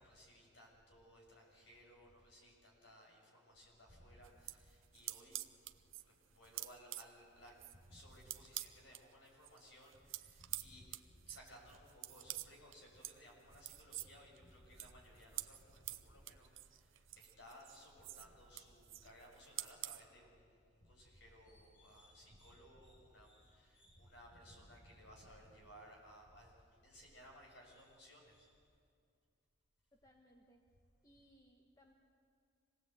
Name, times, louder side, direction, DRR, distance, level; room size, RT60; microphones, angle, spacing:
voice 1, 0.0-5.4 6.0-26.6 26.8-28.6, equal, 60° left, -1 dB, 6.9 m, -60 dB
sound 1, 4.2-9.0 9.4-20.0, right 15 dB, 75° right, 0.7 m, -49 dB
voice 2, 29.9-30.8 31.0-31.9, equal, 20° left, 0 dB, 1.4 m, -67 dB
26.0 x 19.0 x 8.1 m, 2.2 s
head